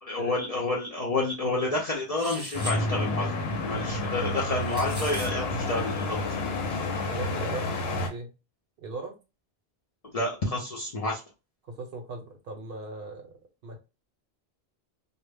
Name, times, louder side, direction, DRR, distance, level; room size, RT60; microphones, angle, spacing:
voice 1, 0.0-3.3 3.6-6.8 10.1-11.2, left 2 dB, 50° left, -3 dB, 0.4 m, -30 dB
sound 1, 2.2-2.8 4.4-5.3, equal, 15° right, 0.4 m, -39 dB
sound 2, 2.5-8.1, left 2 dB, 70° left, 0.8 m, -30 dB
voice 2, 7.1-8.3 8.8-9.2 11.6-13.4 13.6-13.8, right 3 dB, 65° right, 4 dB, 0.8 m, -39 dB
2.1 x 2.0 x 3.3 m, 0.29 s
omnidirectional pair, 1.1 m